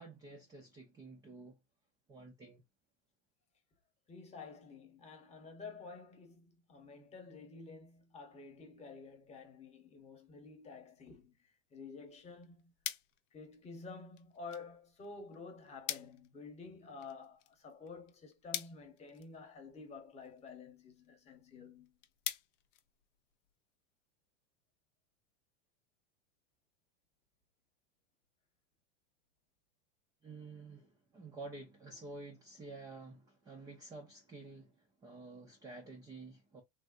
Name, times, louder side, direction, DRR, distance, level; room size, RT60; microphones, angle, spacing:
voice 1, 0.0-1.6 2.1-2.6 30.2-36.6, right 3 dB, 10° right, 0.4 m, -50 dB
voice 2, 4.1-12.7 13.3-22.0, left 4 dB, 20° left, 1.0 m, -51 dB
sound 1, 12.1-23.6, left 12 dB, 80° left, 0.7 m, -48 dB
3.3 x 2.6 x 2.5 m
supercardioid pair, 150°, 36 cm